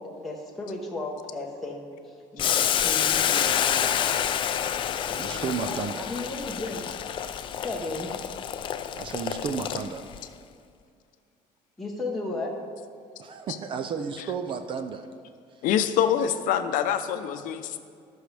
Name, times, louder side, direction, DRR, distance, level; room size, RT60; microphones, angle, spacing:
voice 1, 0.0-4.4 5.1-6.8 7.6-8.2 11.8-12.5, left 2 dB, ahead, -4 dB, 1.0 m, -35 dB
Boiling, 2.4-10.2, left 9 dB, 40° left, 0.4 m, -28 dB
voice 2, 5.1-6.1 9.0-10.0 13.2-15.1 15.5-15.6, right 6 dB, 40° right, 8 dB, 0.5 m, -32 dB
voice 3, 15.6-17.8, left 9 dB, 80° left, 9 dB, 0.7 m, -25 dB
18.0 x 6.2 x 3.4 m, 2.2 s
cardioid pair, 170°, 14 cm